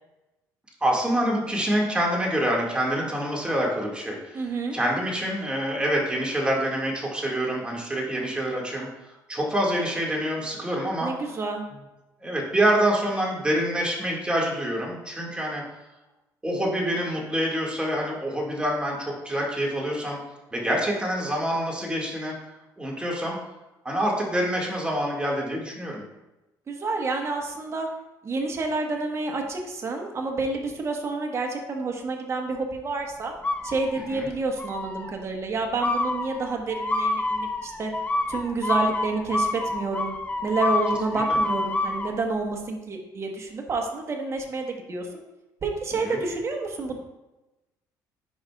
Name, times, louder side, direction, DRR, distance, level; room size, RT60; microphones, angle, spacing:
voice 1, 0.8-4.4 4.7-8.9 9.3-11.1 12.2-15.6 16.4-20.2 20.5-22.3 22.8-23.4 23.8-26.0 34.1-34.3 41.3-41.4 46.0-46.2, right 1 dB, 15° right, -2 dB, 2.0 m, -26 dB
voice 2, 4.3-4.8 11.0-11.6 26.7-27.9 28.2-33.3 33.6-37.9 38.3-40.1 40.4-45.1 45.6-47.0, right 3 dB, 35° right, 2 dB, 1.3 m, -29 dB
sound 1, 33.4-34.2 34.6-35.1 35.8-42.1, left 2 dB, 20° left, 0.6 m, -27 dB
10.5 x 5.1 x 2.4 m, 1.0 s
cardioid pair, 90°, 8 cm